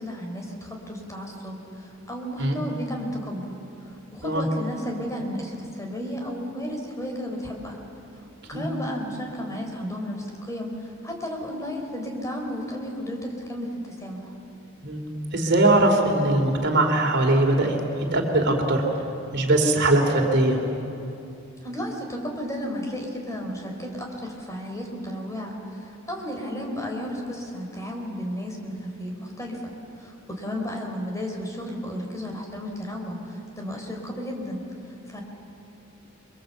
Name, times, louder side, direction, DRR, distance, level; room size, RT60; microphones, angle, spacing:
voice 1, 0.0-3.5 3.8-7.8 8.5-14.3 21.6-35.2, equal, 15° left, 1 dB, 4.2 m, -33 dB
voice 2, 15.3-17.8 18.1-18.8 19.3-20.6, right 2 dB, 55° right, 3 dB, 3.2 m, -21 dB
29.0 x 23.5 x 8.0 m, 2.8 s
head